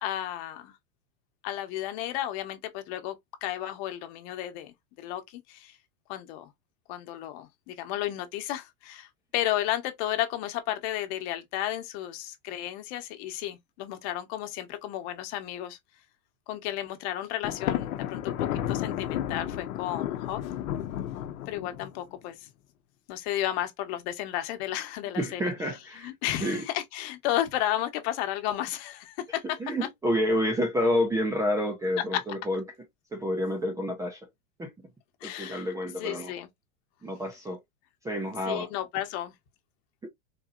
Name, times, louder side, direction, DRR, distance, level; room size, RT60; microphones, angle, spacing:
voice 1, 0.0-0.8 1.4-5.8 6.1-6.5 6.9-15.8 16.5-20.4 21.5-22.3 23.1-25.4 25.7-29.6 32.1-32.2 35.2-35.7 36.0-36.5 38.5-39.3, left 13 dB, 50° left, 1.1 m, -33 dB
Thunder, 17.4-22.0, left 11 dB, 80° left, 0.9 m, -32 dB
voice 2, 25.2-26.1 26.4-26.6 29.6-32.6 33.1-34.2 34.6-34.7 35.2-36.3 37.0-37.6 38.0-38.7, equal, 10° right, 0.5 m, -29 dB
4.1 x 2.7 x 2.4 m
supercardioid pair, 135°, 41 cm